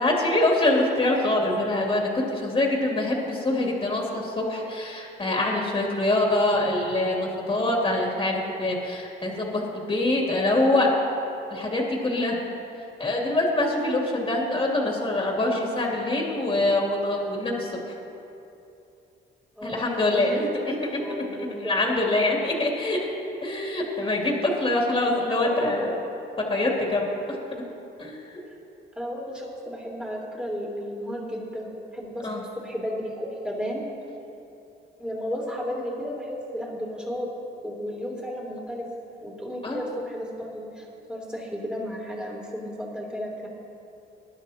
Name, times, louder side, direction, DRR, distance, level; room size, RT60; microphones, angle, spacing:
voice 1, 0.0-10.9 11.5-12.4 13.0-17.9 19.6-20.7 21.6-23.0 23.4-26.0 26.5-27.4 28.0-28.4 32.2-32.4 39.6-39.8, left 2 dB, 25° left, -2 dB, 2.6 m, -24 dB
voice 2, 19.6-20.7 21.0-21.8 25.2-25.9 29.0-32.3 32.6-33.8 35.0-37.3 37.6-38.9 39.2-43.5, equal, 5° right, -3 dB, 3.1 m, -33 dB
20.5 x 11.0 x 2.9 m, 2.8 s
cardioid pair, 90°, 20 cm